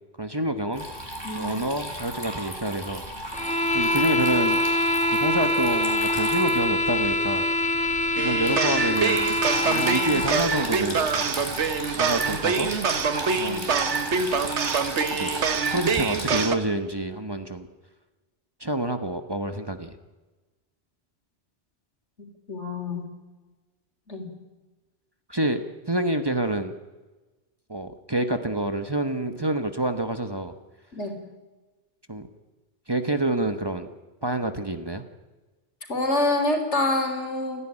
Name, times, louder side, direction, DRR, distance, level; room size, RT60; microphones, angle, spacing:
voice 1, 0.2-0.9 1.3-3.0 3.7-4.6 5.2-7.4 8.2-9.3 9.7-11.1 12.0-12.7 13.4-13.7 15.1-15.3 15.7-17.7 18.6-19.9 25.3-25.6 25.9-26.7 27.7-30.5 32.1-32.3 32.9-33.9 34.2-35.0, right 1 dB, 20° right, 8 dB, 1.1 m, -27 dB
Water tap faucet / Trickle dribble, 0.7-16.4, equal, 25° left, 4.5 m, -36 dB
sound 1, 3.3-10.4, left 1 dB, 5° left, 1.3 m, -24 dB
sound 2, 8.2-16.6, right 5 dB, 85° right, 1.5 m, -25 dB
voice 2, 22.2-23.1 24.1-24.3 30.9-31.2 35.9-37.6, left 2 dB, 85° left, 5 dB, 3.7 m, -26 dB
28.5 x 10.5 x 9.9 m, 1.2 s
omnidirectional pair, 1.1 m